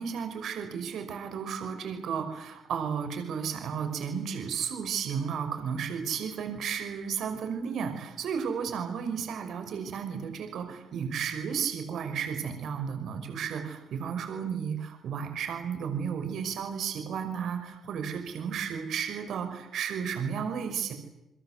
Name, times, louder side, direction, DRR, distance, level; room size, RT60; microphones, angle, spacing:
voice 1, 0.0-20.9, right 7 dB, 70° right, 7 dB, 5.7 m, -33 dB
28.5 x 22.5 x 8.2 m, 0.88 s
cardioid pair, 90°, 0 cm